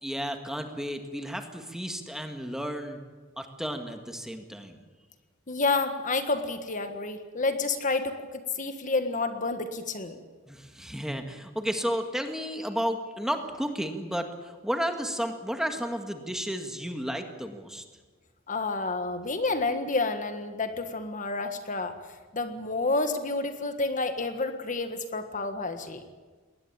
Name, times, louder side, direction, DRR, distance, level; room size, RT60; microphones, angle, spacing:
voice 1, 0.0-3.0 3.4-4.8 10.5-17.8, equal, 5° right, 5 dB, 1.8 m, -32 dB
voice 2, 5.5-10.2 18.5-21.9 22.3-26.0, left 3 dB, 40° left, 8 dB, 1.6 m, -29 dB
21.5 x 18.5 x 8.8 m, 1.4 s
head